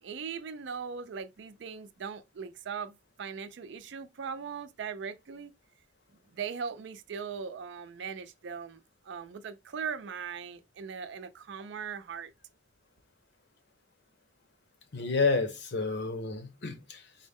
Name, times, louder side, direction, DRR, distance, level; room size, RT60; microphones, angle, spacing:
voice 1, 0.0-5.5 6.3-12.3, right 6 dB, 70° right, 0.4 m, -39 dB
voice 2, 14.9-17.0, left 4 dB, 65° left, 0.8 m, -30 dB
4.0 x 2.1 x 3.4 m
head